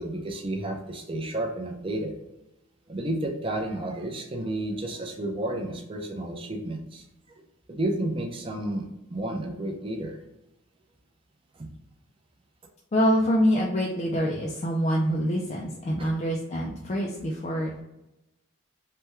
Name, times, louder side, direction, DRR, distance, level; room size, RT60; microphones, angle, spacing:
voice 1, 0.0-2.1 2.9-7.1 7.3-7.4 7.7-10.2 11.5-11.7 16.0-16.1, right 1 dB, 25° right, 2 dB, 0.5 m, -31 dB
voice 2, 12.9-17.7, equal, 35° left, -2 dB, 0.3 m, -25 dB
3.3 x 2.2 x 3.0 m, 0.92 s
head